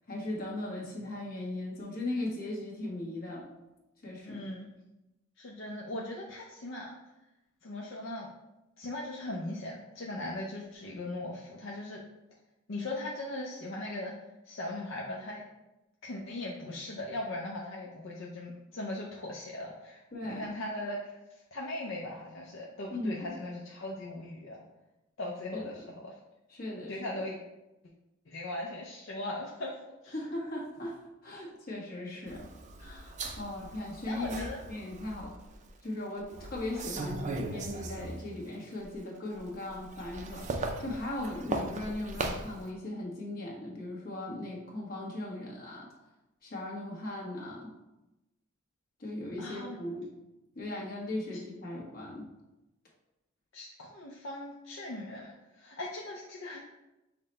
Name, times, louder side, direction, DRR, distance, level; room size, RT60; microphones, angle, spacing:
voice 1, 0.1-3.4 4.0-4.5 20.1-20.5 22.9-23.3 25.5-25.7 26.5-27.2 30.1-32.5 32.8-35.3 35.8-40.5 40.8-45.9 46.4-47.7 49.0-50.1 50.5-52.3, left 1 dB, 45° left, -3 dB, 1.2 m, -38 dB
voice 2, 4.2-4.7 5.4-7.0 7.6-8.3 8.8-12.0 12.7-14.1 14.4-15.4 16.0-21.2 21.5-24.6 25.2-26.2 26.9-27.4 28.3-29.8 30.0-30.1 34.1-34.6 49.4-49.8 53.5-56.6, left 1 dB, 65° left, -2 dB, 0.6 m, -39 dB
sound 1, 32.3-35.7 36.2-38.5 38.8-42.6, right 2 dB, 35° right, 0.5 m, -39 dB
5.7 x 2.2 x 4.1 m, 0.96 s
head